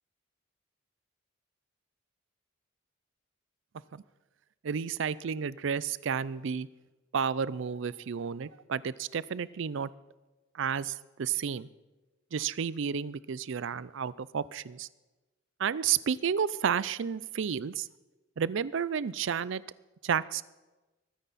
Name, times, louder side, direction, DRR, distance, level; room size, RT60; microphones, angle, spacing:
voice 1, 4.6-6.7 7.1-9.9 10.5-11.7 12.3-14.9 15.6-17.9 18.4-19.6 20.0-20.4, right 7 dB, 65° right, 19 dB, 0.4 m, -31 dB
22.0 x 9.3 x 4.2 m, 1.1 s
head